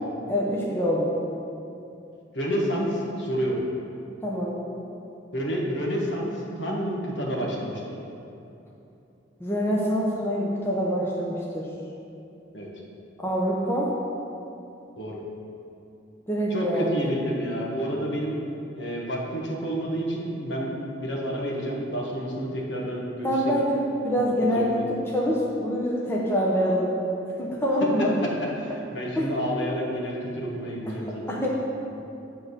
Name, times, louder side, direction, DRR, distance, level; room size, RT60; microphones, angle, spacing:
voice 1, 0.3-1.1 4.2-4.6 9.4-11.7 13.2-14.0 16.3-17.1 23.2-27.0 27.4-28.1 29.1-29.3 30.9-31.5, equal, 15° left, -4 dB, 0.9 m, -25 dB
voice 2, 2.3-3.6 5.3-7.8 12.5-12.7 15.0-15.2 16.5-18.4 18.7-23.3 24.1-24.9 28.6-31.4, equal, 70° left, -2 dB, 1.4 m, -29 dB
9.7 x 3.8 x 6.5 m, 2.8 s
head